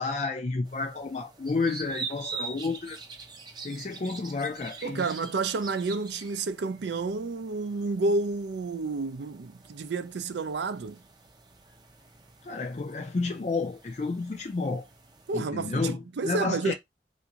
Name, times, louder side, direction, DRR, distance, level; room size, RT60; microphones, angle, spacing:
voice 1, 0.0-3.0 3.6-5.1 12.4-14.9 15.3-16.7, left 3 dB, 40° left, 0.4 m, -31 dB
sound 1, 0.6-15.4, right 4 dB, 25° right, 0.5 m, -45 dB
voice 2, 4.8-11.0 15.3-16.7, right 3 dB, 80° right, 0.4 m, -30 dB
3.5 x 2.6 x 2.9 m
head